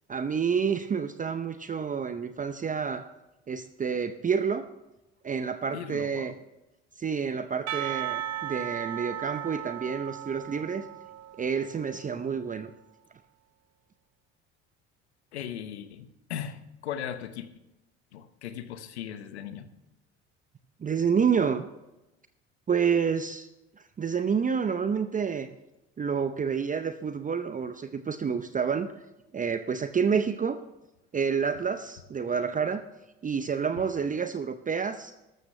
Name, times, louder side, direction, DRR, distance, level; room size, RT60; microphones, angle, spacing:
voice 1, 0.1-3.0 3.5-4.7 5.2-6.3 7.0-10.8 11.4-12.7 20.8-21.7 22.7-23.5 24.0-25.5 26.0-28.9 29.3-30.6 31.1-32.8 33.2-35.1, right 6 dB, 25° right, 9 dB, 0.7 m, -28 dB
voice 2, 5.7-6.3 15.3-17.5 18.1-19.7, left 9 dB, 90° left, 11 dB, 0.9 m, -38 dB
Percussion / Church bell, 7.7-12.2, right 12 dB, 50° right, 1.0 m, -36 dB
13.0 x 13.0 x 3.3 m, 0.97 s
hypercardioid pair, 65°, 32 cm